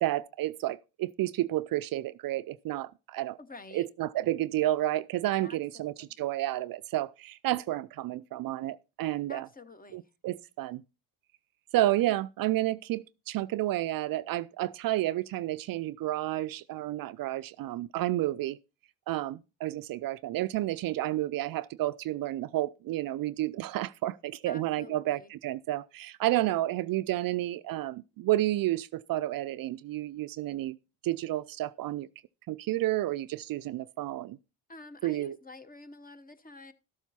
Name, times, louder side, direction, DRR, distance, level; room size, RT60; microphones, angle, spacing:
voice 1, 0.0-3.4 3.7-9.5 9.9-10.8 11.7-18.6 19.1-30.8 31.0-32.1 32.5-34.4 35.0-35.4, right 15 dB, 55° right, 0.5 m, -31 dB
voice 2, 3.4-3.9 5.4-6.1 9.3-10.0 24.5-25.3 34.7-36.7, left 2 dB, 20° left, 1.1 m, -48 dB
12.5 x 7.2 x 4.2 m
supercardioid pair, 60°, 42 cm